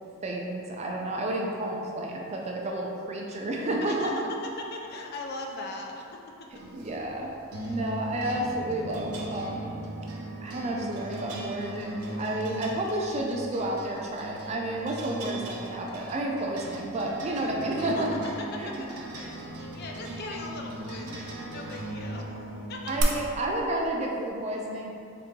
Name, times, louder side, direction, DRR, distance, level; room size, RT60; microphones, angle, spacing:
voice 1, 0.2-4.1 6.7-7.3 7.7-9.7 10.4-18.1 18.6-18.7 22.9-24.9, right 1 dB, 30° right, -1 dB, 0.3 m, -31 dB
voice 2, 3.8-4.2 4.6-6.2 7.2-7.3 7.6-7.8 17.7-18.0 18.5-18.9 19.1-22.3 22.7-22.9, left 2 dB, 45° left, 1 dB, 0.4 m, -39 dB
sound 1, 6.6-23.0, right 1 dB, 85° right, 0.6 m, -38 dB
3.8 x 2.8 x 3.6 m, 2.7 s
head